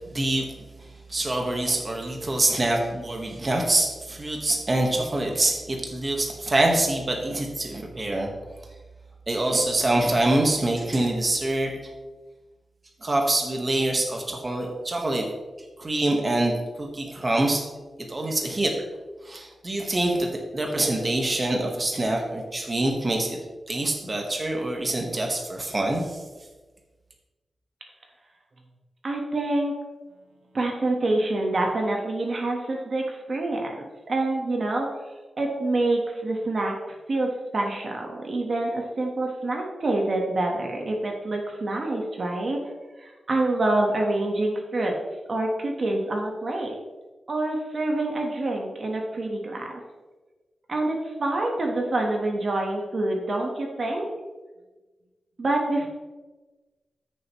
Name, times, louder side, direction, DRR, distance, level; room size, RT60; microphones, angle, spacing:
voice 1, 0.1-0.5 1.1-8.3 9.3-11.7 13.0-15.2 15.8-17.6 18.1-18.7 19.2-23.4 23.7-26.2, right 1 dB, 30° right, 1 dB, 1.4 m, -25 dB
voice 2, 29.0-29.7 30.5-34.9 35.4-42.6 43.0-44.9 45.3-46.7 47.3-49.7 50.7-54.1 55.4-55.9, right 2 dB, 50° right, 1 dB, 1.4 m, -26 dB
13.5 x 6.8 x 3.1 m, 1.2 s
wide cardioid pair, 125°, 0 cm